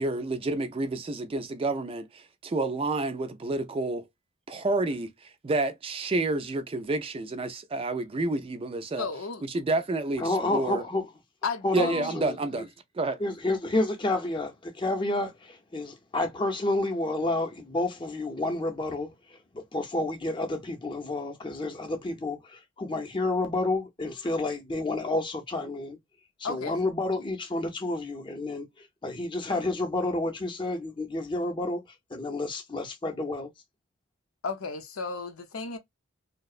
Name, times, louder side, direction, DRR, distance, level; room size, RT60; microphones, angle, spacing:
voice 1, 0.0-4.0 4.5-9.1 9.4-10.8 11.7-12.7 12.9-13.2, right 2 dB, 25° right, 0.4 m, -29 dB
voice 2, 9.0-9.4 11.4-12.1 26.4-26.8 34.4-35.8, left 4 dB, 90° left, 0.6 m, -34 dB
voice 3, 10.2-11.1 11.6-12.6 13.2-26.0 26.4-31.8 32.1-33.5, left 2 dB, 25° left, 0.6 m, -30 dB
2.8 x 2.0 x 2.4 m
head